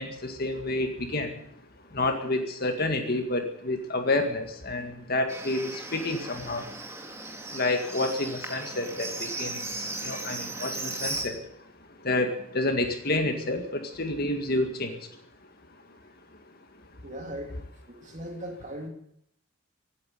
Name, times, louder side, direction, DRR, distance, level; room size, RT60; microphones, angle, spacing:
voice 1, 0.0-1.3 1.9-6.7 7.0-7.1 7.5-15.2 15.7-16.0 16.4-16.6 16.9-17.0, left 2 dB, 50° left, 5 dB, 2.0 m, -29 dB
Livestock farm animals working animals, 5.3-11.3, right 2 dB, 15° right, 2.0 m, -36 dB
voice 2, 17.0-17.6 17.9-18.9, equal, 35° right, 3 dB, 2.8 m, -38 dB
16.0 x 9.6 x 9.4 m, 0.72 s
head